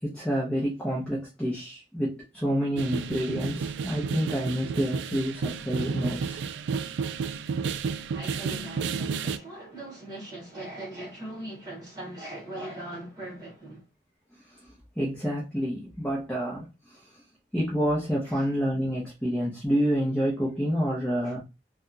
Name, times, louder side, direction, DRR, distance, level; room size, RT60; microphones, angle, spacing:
voice 1, 0.0-6.4 15.0-17.0 17.5-21.4, equal, 5° left, 0.9 m, -28 dB
sound 1, 2.8-9.4, right 5 dB, 90° right, 0.3 m, -31 dB
voice 2, 8.1-13.8 18.2-18.5 21.2-21.3, right 1 dB, 25° right, 1.6 m, -40 dB
3.5 x 2.3 x 2.7 m
head